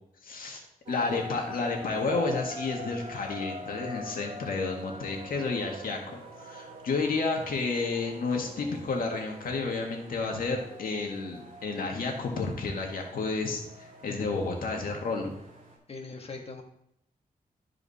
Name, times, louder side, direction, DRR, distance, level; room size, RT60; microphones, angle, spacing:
voice 1, 0.2-15.3, left 3 dB, 75° left, 1 dB, 1.8 m, -31 dB
sound 1, 0.9-15.8, equal, 50° right, 3.7 m, -44 dB
voice 2, 15.9-16.6, left 3 dB, 40° left, 2 dB, 1.4 m, -40 dB
12.5 x 4.8 x 4.2 m, 0.78 s
wide cardioid pair, 125°, 15 cm